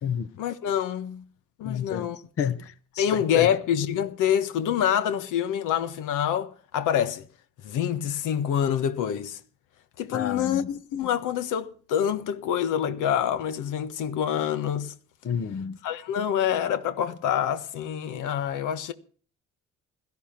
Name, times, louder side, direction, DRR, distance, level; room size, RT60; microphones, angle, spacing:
voice 1, 0.4-1.2 1.6-2.2 3.0-7.2 7.6-9.4 10.0-14.9 15.8-18.9, left 9 dB, 90° left, 1.4 m, -26 dB
voice 2, 1.6-2.1 2.4-3.1 3.3-3.5 10.1-10.6 15.2-15.8, left 7 dB, 50° left, 1.0 m, -29 dB
17.0 x 13.5 x 6.0 m
cardioid pair, 90°, 30 cm